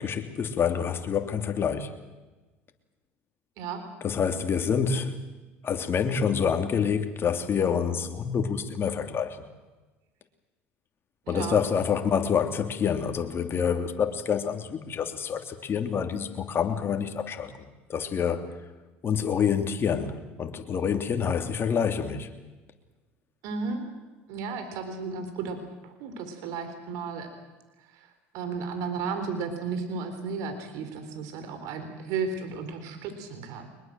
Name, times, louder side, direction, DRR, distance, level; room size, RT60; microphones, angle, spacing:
voice 1, 0.0-1.9 4.0-5.1 5.6-9.4 11.3-18.5 19.0-22.3, left 7 dB, 35° left, 6 dB, 3.0 m, -27 dB
voice 2, 11.3-11.6 23.4-23.9 24.3-25.6 25.8-27.3 28.3-33.7, right 5 dB, 65° right, 8 dB, 3.9 m, -33 dB
23.5 x 21.5 x 7.7 m, 1.2 s
hypercardioid pair, 80°, 6 cm